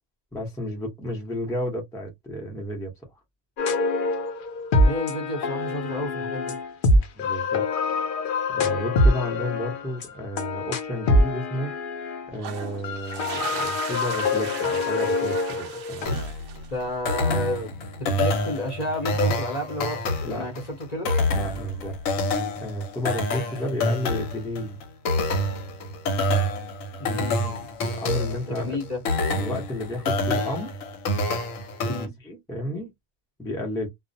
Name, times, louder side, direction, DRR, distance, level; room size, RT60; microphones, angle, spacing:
voice 1, 0.3-2.9 6.9-7.6 8.5-11.7 12.3-16.2 20.2-20.6 21.3-21.9 22.6-24.8 27.9-28.8 29.3-30.8 31.8-32.9 33.4-33.9, left 1 dB, 5° left, 0.6 m, -32 dB
sound 1, 3.6-12.3 12.8-16.0, left 2 dB, 60° left, 0.5 m, -25 dB
voice 2, 4.8-6.6 16.7-21.1 27.0-27.7 28.3-29.0 31.9-32.1, left 1 dB, 35° left, 0.8 m, -31 dB
sound 2, 12.3-16.9, right 8 dB, 70° right, 0.5 m, -37 dB
sound 3, 16.1-32.1, left 1 dB, 75° left, 1.1 m, -27 dB
2.4 x 2.1 x 2.6 m
omnidirectional pair, 1.4 m